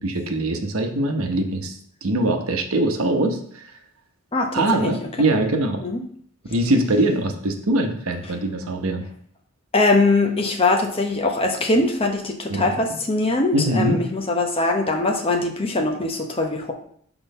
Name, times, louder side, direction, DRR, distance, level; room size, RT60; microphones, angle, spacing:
voice 1, 0.0-3.6 4.5-5.8 6.5-9.0 12.5-12.7 13.5-14.0, right 1 dB, 85° right, 5 dB, 1.0 m, -22 dB
voice 2, 4.3-4.9 5.2-5.3 5.8-6.0 9.7-16.7, left 2 dB, 25° left, 3 dB, 0.9 m, -22 dB
6.1 x 3.9 x 5.5 m, 0.62 s
head